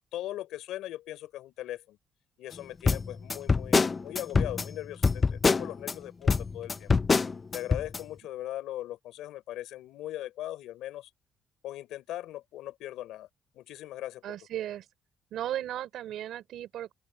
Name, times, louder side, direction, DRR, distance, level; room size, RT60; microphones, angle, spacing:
voice 1, 0.0-2.0 2.4-6.9 7.5-11.1 11.6-13.3 13.5-14.4, left 14 dB, 90° left, 4.5 m, -39 dB
sound 1, 2.8-5.9 6.3-8.0, left 4 dB, 35° left, 0.5 m, -25 dB
voice 2, 14.2-14.9 15.3-16.9, right 12 dB, 80° right, 3.4 m, -35 dB
open air
cardioid pair, 90°, 0 cm